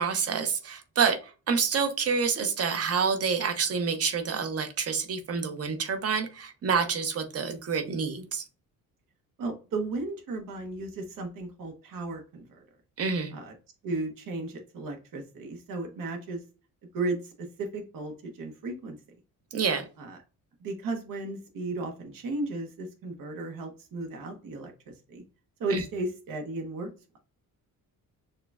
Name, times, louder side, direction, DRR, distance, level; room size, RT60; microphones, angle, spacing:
voice 1, 0.0-8.4 13.0-13.3 19.5-19.8 25.7-25.8, right 5 dB, 45° right, 7 dB, 0.8 m, -28 dB
voice 2, 9.4-12.6 13.3-13.5 13.8-16.4 16.9-19.0 20.0-20.2 20.6-25.2 25.6-26.9, right 2 dB, 70° right, 3 dB, 1.0 m, -35 dB
6.4 x 2.2 x 2.3 m, 0.34 s
cardioid pair, 120°, 35 cm